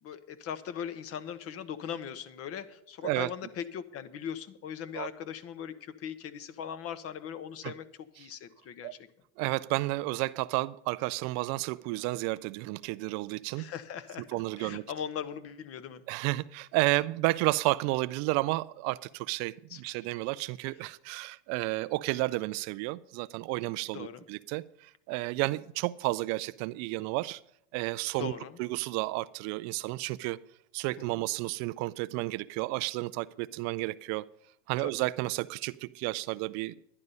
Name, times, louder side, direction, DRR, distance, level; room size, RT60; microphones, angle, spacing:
voice 1, 0.0-8.9 13.5-16.0 19.7-20.0 23.9-24.2 28.2-28.6 34.8-34.9, left 8 dB, 45° left, 1.1 m, -40 dB
voice 2, 9.4-13.6 14.3-14.8 16.1-27.4 27.7-28.3 28.6-30.4 30.7-34.3 34.7-36.7, right 20 dB, 50° right, 0.4 m, -31 dB
11.0 x 11.0 x 5.5 m
hypercardioid pair, 95°, 34 cm